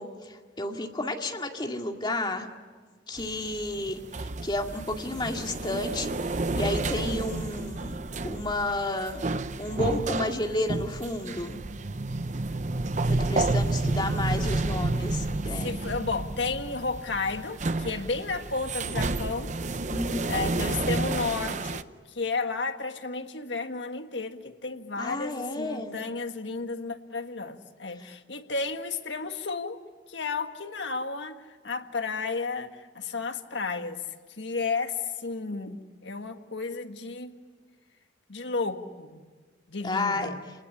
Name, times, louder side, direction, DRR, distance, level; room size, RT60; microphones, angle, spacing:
voice 1, 0.0-2.5 3.1-4.0 4.4-6.1 6.5-7.9 8.2-9.2 9.6-11.6 13.1-15.7 19.9-20.4 25.0-26.0 39.8-40.3, left 2 dB, 25° left, 2 dB, 2.2 m, -31 dB
sound 1, 3.2-21.8, right 2 dB, 40° right, 0.7 m, -30 dB
voice 2, 13.6-14.0 14.5-14.6 15.6-19.5 20.3-29.8 30.1-34.0 34.4-37.4 38.3-39.2 39.7-40.4, left 4 dB, 80° left, 7 dB, 1.7 m, -33 dB
29.0 x 20.0 x 10.0 m, 1.5 s
head